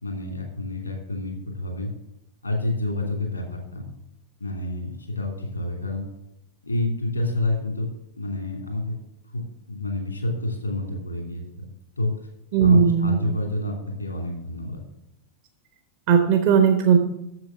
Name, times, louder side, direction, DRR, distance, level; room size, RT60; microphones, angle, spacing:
voice 1, 0.0-1.9 2.4-4.0 4.4-6.0 6.6-7.9 8.2-8.9 9.3-11.7 12.0-12.1 12.6-13.7 14.0-14.8, left 2 dB, 85° left, 2 dB, 2.7 m, -28 dB
voice 2, 12.5-13.2 16.1-17.0, right 7 dB, 45° right, 5 dB, 1.0 m, -17 dB
7.9 x 7.4 x 7.1 m, 0.83 s
figure-of-eight pair, 90°, 0 cm